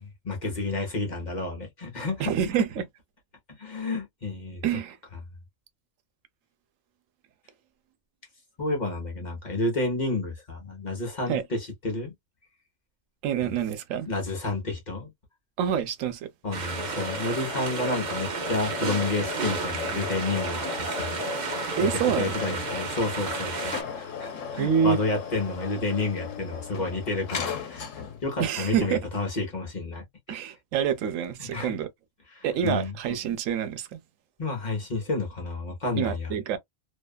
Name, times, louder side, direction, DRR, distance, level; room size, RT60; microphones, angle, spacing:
voice 1, 0.0-2.3 3.5-4.6 8.6-12.1 13.4-13.5 14.1-15.1 16.4-30.4 31.4-31.7 32.3-32.9 34.4-36.3, left 2 dB, 40° left, 1.0 m, -30 dB
voice 2, 2.2-2.8 4.6-5.0 11.3-11.4 13.2-14.1 15.6-16.3 21.8-22.6 24.6-25.0 28.4-29.0 30.3-31.9 32.4-34.0 36.0-36.6, right 8 dB, 85° right, 1.0 m, -27 dB
sound 1, 16.5-23.8, right 4 dB, 45° right, 0.6 m, -32 dB
sound 2, 16.6-28.3, left 6 dB, 75° left, 1.1 m, -36 dB
2.7 x 2.3 x 2.2 m
omnidirectional pair, 1.3 m